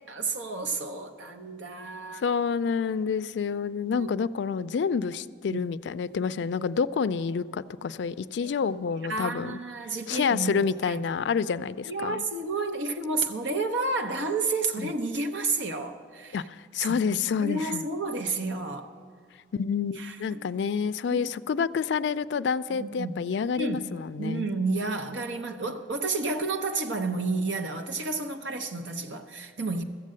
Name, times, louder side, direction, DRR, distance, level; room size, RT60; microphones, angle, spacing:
voice 1, 0.1-2.2 3.8-4.1 5.5-5.7 8.4-8.5 9.1-10.5 10.8-11.0 11.9-16.4 16.9-18.9 20.0-20.4 21.1-21.2 22.7-23.1 23.6-23.9 24.2-29.8, right 3 dB, 80° right, 5 dB, 0.7 m, -31 dB
voice 2, 2.2-9.6 10.1-12.2 14.8-14.9 16.3-17.8 19.5-24.5, left 6 dB, 70° left, 15 dB, 0.3 m, -28 dB
14.0 x 7.5 x 7.5 m, 2.1 s
head